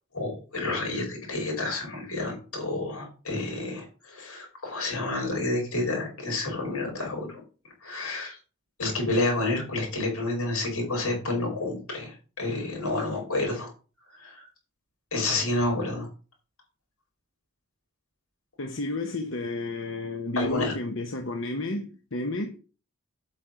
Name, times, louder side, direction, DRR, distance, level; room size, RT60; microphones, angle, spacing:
voice 1, 0.1-7.4 7.8-8.4 8.8-13.7 14.2-14.5 15.1-16.1 20.4-20.8, left 2 dB, 90° left, 5.2 m, -29 dB
voice 2, 18.6-22.6, left 2 dB, 60° left, 1.0 m, -31 dB
8.4 x 5.9 x 5.1 m
head